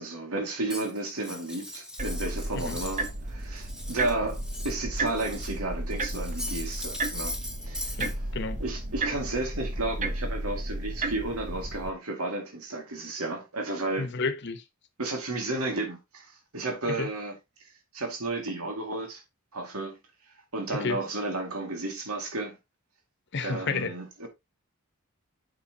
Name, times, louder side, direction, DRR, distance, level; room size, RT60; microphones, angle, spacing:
voice 1, 0.0-7.4 7.6-8.0 8.6-14.1 15.0-17.4 17.9-19.2 19.5-20.0 20.5-22.6 23.4-24.3, right 2 dB, 85° right, 2.2 m, -33 dB
Cutlery silverware, 0.7-3.2 3.4-5.6 5.9-8.1, left 1 dB, 5° right, 1.2 m, -39 dB
sound 1, 2.0-11.9, right 2 dB, 35° right, 1.0 m, -33 dB
voice 2, 8.0-8.6 14.0-14.6 16.9-17.1 20.7-21.0 23.3-23.9, left 4 dB, 50° left, 1.1 m, -31 dB
8.4 x 6.0 x 2.8 m
head